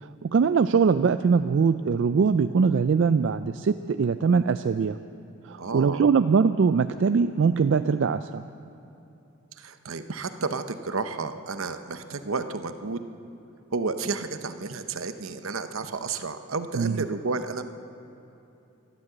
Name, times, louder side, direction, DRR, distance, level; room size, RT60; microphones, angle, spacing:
voice 1, 0.0-5.0 5.4-8.4 16.7-17.0, right 5 dB, 60° right, 10 dB, 0.3 m, -22 dB
voice 2, 5.6-6.0 9.6-13.0 13.7-17.7, right 4 dB, 80° right, 9 dB, 0.8 m, -31 dB
13.5 x 12.0 x 7.9 m, 2.9 s
head